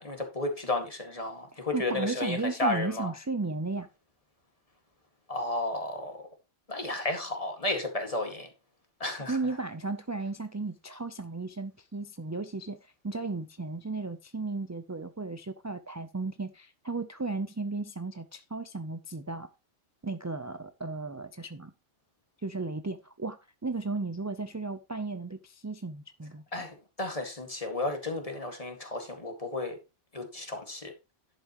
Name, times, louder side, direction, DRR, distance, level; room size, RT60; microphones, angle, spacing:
voice 1, 0.0-3.1 5.3-6.3 6.7-8.5 9.0-9.4 26.5-29.8 30.1-30.9, left 2 dB, 30° left, 2.1 m, -33 dB
voice 2, 1.5-3.9 9.3-19.5 20.0-21.7 22.4-26.4, right 3 dB, 25° right, 0.3 m, -35 dB
11.0 x 8.0 x 3.0 m
omnidirectional pair, 1.2 m